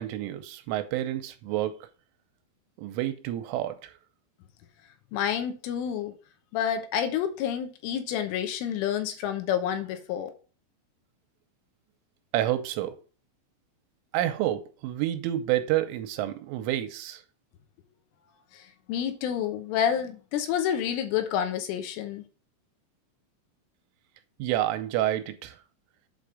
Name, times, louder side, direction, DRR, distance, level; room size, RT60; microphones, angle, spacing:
voice 1, 0.0-1.8 2.8-3.9 12.3-13.0 14.1-17.2 24.4-25.6, right 13 dB, 85° right, 3.2 m, -29 dB
voice 2, 5.1-6.1 6.5-10.3 18.5-22.3, left 9 dB, 80° left, 3.4 m, -29 dB
8.2 x 3.6 x 6.4 m
omnidirectional pair, 5.8 m